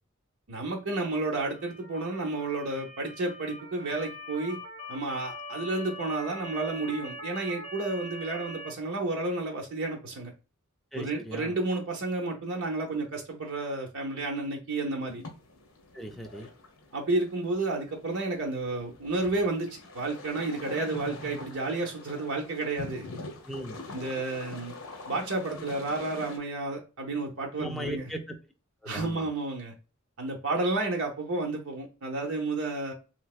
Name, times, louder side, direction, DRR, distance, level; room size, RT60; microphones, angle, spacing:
voice 1, 0.5-4.6 4.9-10.3 11.0-15.2 16.9-23.1 23.9-24.7 25.1-28.0 28.9-29.7 30.2-32.9, right 2 dB, 85° right, 0 dB, 0.7 m, -31 dB
Motor vehicle (road) / Siren, 1.2-8.7, left 1 dB, 30° left, 1.2 m, -43 dB
voice 2, 10.9-11.6 15.9-16.5 23.5-23.8 27.6-28.4 28.8-29.3, right 1 dB, ahead, 2 dB, 0.5 m, -38 dB
sound 1, 15.1-26.4, left 2 dB, 70° left, 0.8 m, -44 dB
3.2 x 2.9 x 2.3 m, 0.32 s
head